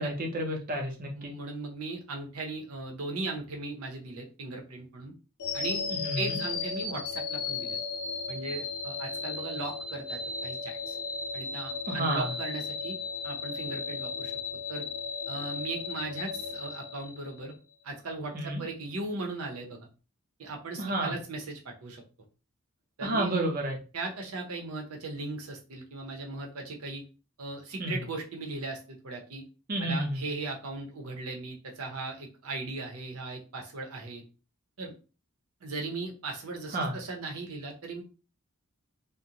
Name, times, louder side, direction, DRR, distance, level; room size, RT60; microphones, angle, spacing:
voice 1, 0.0-1.3 5.9-6.4 11.9-12.3 18.3-18.6 20.8-21.2 23.0-23.8 27.8-28.0 29.7-30.2 36.7-36.9, right 1 dB, 40° right, 1 dB, 0.6 m, -30 dB
voice 2, 1.2-5.1 5.5-5.8 6.2-7.8 8.3-11.0 11.3-13.0 13.2-14.3 14.7-14.9 15.3-17.5 17.8-19.8 20.4-22.0 23.0-23.3 23.9-27.0 27.4-29.4 29.8-34.2 34.8-34.9 35.6-38.0, right 3 dB, 80° right, 2 dB, 0.7 m, -38 dB
sound 1, 5.4-17.5, left 4 dB, 85° left, 0.7 m, -35 dB
2.5 x 2.1 x 2.8 m, 0.33 s
head